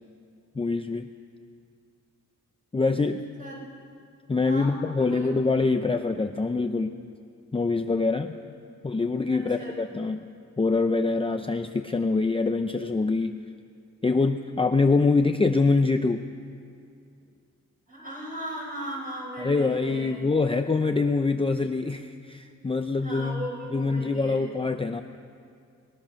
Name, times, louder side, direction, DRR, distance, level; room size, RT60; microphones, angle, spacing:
voice 1, 0.5-1.1 2.7-3.3 4.3-7.0 7.5-8.4 8.8-10.3 10.6-13.4 14.0-16.3 19.4-25.0, left 3 dB, 20° left, 6 dB, 0.6 m, -25 dB
voice 2, 5.0-5.3 9.3-9.8 17.9-20.2 23.0-24.4, right 1 dB, 30° right, -3 dB, 6.5 m, -36 dB
22.0 x 20.5 x 6.4 m, 2.4 s
wide cardioid pair, 155°, 30 cm